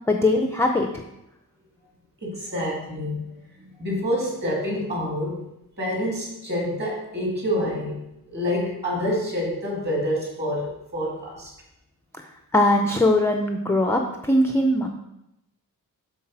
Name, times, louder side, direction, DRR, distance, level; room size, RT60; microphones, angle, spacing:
voice 1, 0.1-1.0 12.5-14.9, left 1 dB, 10° left, 3 dB, 0.4 m, -20 dB
voice 2, 2.2-5.4 5.8-8.0 8.3-11.5, equal, 30° right, -3 dB, 2.3 m, -27 dB
7.2 x 4.0 x 6.0 m, 0.87 s
wide cardioid pair, 180°, 35 cm